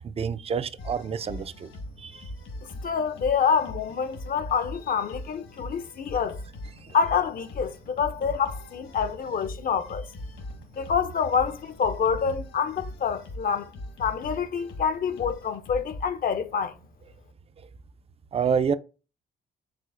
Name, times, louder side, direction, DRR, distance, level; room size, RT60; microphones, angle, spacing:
voice 1, 0.0-1.7 2.0-2.2 18.3-18.7, right 6 dB, 30° right, 0.4 m, -27 dB
sound 1, 0.8-16.1, left 1 dB, 75° left, 1.4 m, -41 dB
voice 2, 2.8-6.4 6.9-10.1 10.8-13.7 14.0-16.7, left 6 dB, 45° left, 0.5 m, -27 dB
4.9 x 3.8 x 2.5 m
cardioid pair, 90°, 20 cm